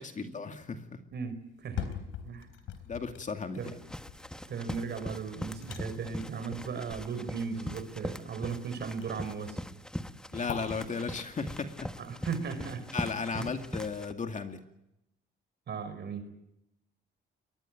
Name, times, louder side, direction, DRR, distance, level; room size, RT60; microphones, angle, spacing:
voice 1, 0.0-1.0 2.9-3.8 10.3-11.9 12.9-14.6, left 5 dB, 40° left, 6 dB, 2.3 m, -35 dB
voice 2, 1.1-1.9 2.2-2.5 3.6-3.7 4.5-9.6 12.0-12.9 13.3-13.5 15.7-16.3, right 5 dB, 60° right, 9 dB, 5.1 m, -36 dB
sound 1, 1.5-13.5 13.9-14.0, left 8 dB, 80° left, 3.8 m, -45 dB
sound 2, 3.6-14.1, left 1 dB, 5° left, 1.4 m, -41 dB
22.0 x 20.5 x 9.2 m, 0.83 s
cardioid pair, 90°, 20 cm